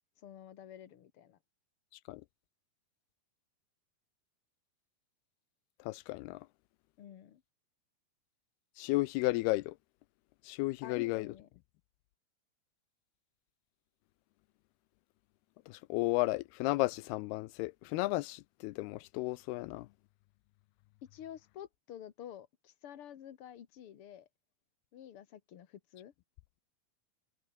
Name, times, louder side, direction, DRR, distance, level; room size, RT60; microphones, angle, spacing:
voice 1, 0.2-1.4 7.0-7.4 10.8-11.5 21.0-24.3 24.9-26.1, left 10 dB, 60° left, 1.4 m, -49 dB
voice 2, 5.8-6.5 8.8-9.8 10.4-11.3 15.7-19.9, left 20 dB, 85° left, 2.6 m, -33 dB
omnidirectional pair, 4.5 m